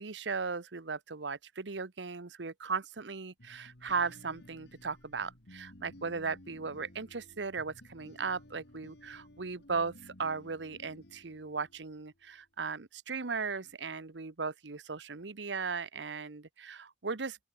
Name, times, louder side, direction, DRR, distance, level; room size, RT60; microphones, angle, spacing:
voice 1, 0.0-17.5, right 5 dB, 90° right, 1.0 m, -37 dB
sound 1, 3.4-12.1, left 1 dB, 70° left, 3.6 m, -56 dB
open air
head